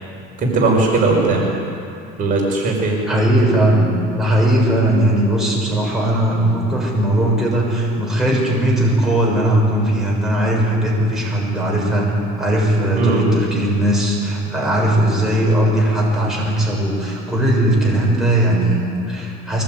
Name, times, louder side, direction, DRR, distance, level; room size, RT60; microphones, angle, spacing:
voice 1, 0.4-1.4 2.2-2.9 13.0-13.2, right 3 dB, 40° right, -1 dB, 5.4 m, -17 dB
voice 2, 3.1-12.1 12.4-19.6, right 1 dB, ahead, -4 dB, 6.9 m, -18 dB
23.0 x 20.5 x 9.5 m, 2.5 s
cardioid pair, 145°, 21 cm